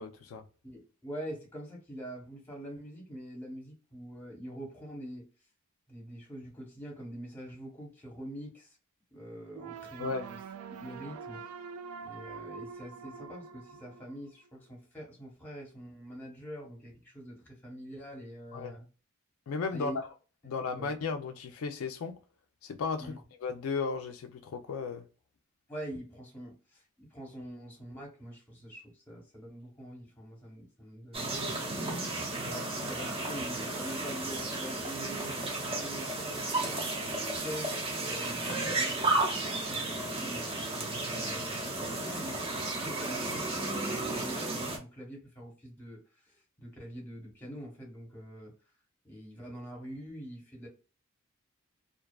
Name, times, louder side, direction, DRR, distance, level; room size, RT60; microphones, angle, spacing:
voice 1, 0.0-0.4 10.0-10.3 18.5-18.8 19.5-20.1 20.5-22.2 22.6-25.1, left 4 dB, 85° left, 0.4 m, -35 dB
voice 2, 0.6-5.3 5.9-8.8 9.1-10.4 10.7-11.4 12.0-18.9 19.7-20.0 20.4-20.9 23.0-23.2 25.7-31.8 32.4-36.8 37.1-37.7 38.0-39.2 39.5-48.5 49.0-50.7, equal, 10° left, 0.9 m, -45 dB
sound 1, 9.5-14.6, right 6 dB, 85° right, 0.3 m, -45 dB
sound 2, 31.1-44.8, right 2 dB, 25° right, 0.6 m, -33 dB
2.5 x 2.3 x 2.2 m
head